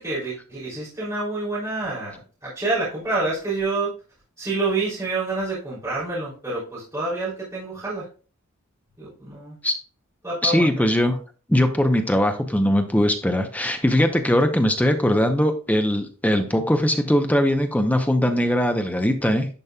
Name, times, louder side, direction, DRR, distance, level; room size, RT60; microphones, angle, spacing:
voice 1, 0.0-3.9 4.4-8.1 9.0-9.5 10.2-10.9, right 3 dB, 15° right, -10 dB, 3.5 m, -28 dB
voice 2, 10.4-11.2 11.5-19.5, equal, 5° left, 6 dB, 0.7 m, -20 dB
11.0 x 5.3 x 2.3 m, 0.37 s
head